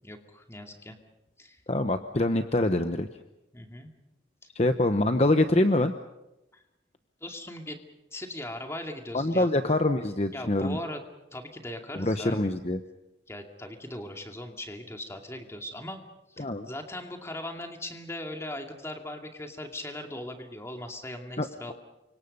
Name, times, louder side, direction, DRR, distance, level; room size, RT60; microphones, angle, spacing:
voice 1, 0.0-1.0 1.4-1.6 3.5-3.9 4.4-4.5 6.5-6.6 7.2-7.8 8.1-9.5 10.3-11.0 11.3-12.4 13.3-16.0 16.3-21.7, left 1 dB, 15° left, 4 dB, 2.4 m, -39 dB
voice 2, 1.7-3.1 4.5-5.9 9.1-10.8 11.9-12.8 16.4-16.7 21.4-21.7, left 1 dB, 35° left, 7 dB, 0.9 m, -25 dB
29.0 x 25.0 x 5.5 m, 0.94 s
head